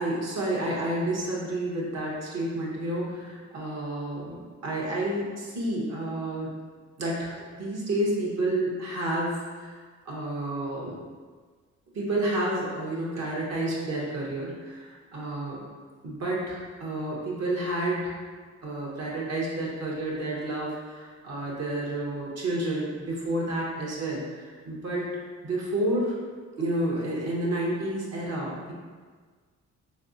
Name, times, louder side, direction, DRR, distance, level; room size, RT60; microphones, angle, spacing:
voice 1, 0.0-6.5 7.0-11.0 11.9-15.6 16.0-18.1 18.6-25.1 25.4-26.2 26.6-28.7, right 1 dB, 60° right, -4 dB, 1.2 m, -30 dB
4.0 x 3.3 x 2.6 m, 1.5 s
cardioid pair, 75°, 29 cm